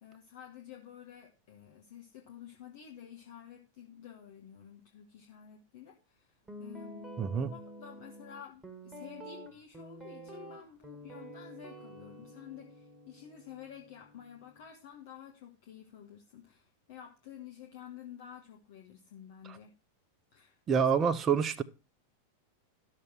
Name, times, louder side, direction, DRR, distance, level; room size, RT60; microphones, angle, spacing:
voice 1, 0.0-7.1 7.5-19.7 20.3-20.6, left 9 dB, 50° left, 1.3 m, -51 dB
Guitar, 6.5-14.7, equal, 10° right, 1.7 m, -49 dB
voice 2, 7.2-7.5 20.7-21.6, right 7 dB, 25° right, 0.7 m, -27 dB
12.0 x 6.6 x 4.4 m
figure-of-eight pair, 90°, 0 cm